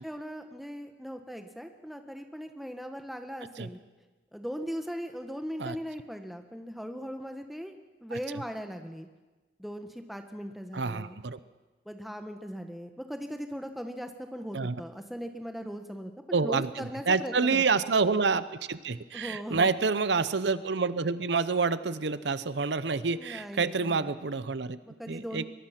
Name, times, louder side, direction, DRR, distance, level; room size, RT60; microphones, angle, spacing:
voice 1, 0.0-3.8 4.3-9.1 9.6-11.2 11.8-17.8 19.1-19.7 23.1-24.1 24.9-25.4, equal, ahead, 5 dB, 1.3 m, -39 dB
voice 2, 8.1-8.4 10.7-11.4 14.5-14.8 16.3-24.8 25.1-25.4, right 4 dB, 85° right, 14 dB, 0.8 m, -28 dB
23.0 x 20.5 x 5.9 m, 1.2 s
head